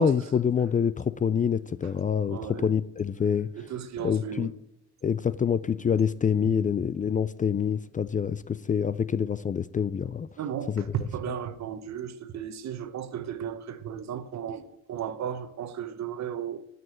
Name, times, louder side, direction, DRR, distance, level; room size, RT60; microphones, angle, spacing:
voice 1, 0.0-3.5 4.0-4.5 5.0-10.3 10.7-10.8, left 7 dB, 25° left, 0.3 m, -26 dB
voice 2, 2.3-2.7 3.5-4.5 6.4-6.6 10.4-16.7, right 9 dB, 65° right, 1.0 m, -35 dB
10.5 x 6.9 x 4.3 m
cardioid pair, 90°, 30 cm